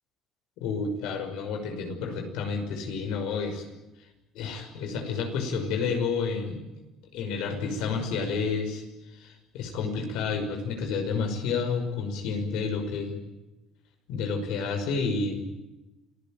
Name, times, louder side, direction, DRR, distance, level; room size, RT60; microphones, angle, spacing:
voice 1, 0.6-3.6 4.3-6.6 7.1-13.2 14.1-15.4, left 5 dB, 80° left, 5 dB, 5.8 m, -30 dB
27.0 x 15.5 x 9.1 m, 1.0 s
supercardioid pair, 90°, 0 cm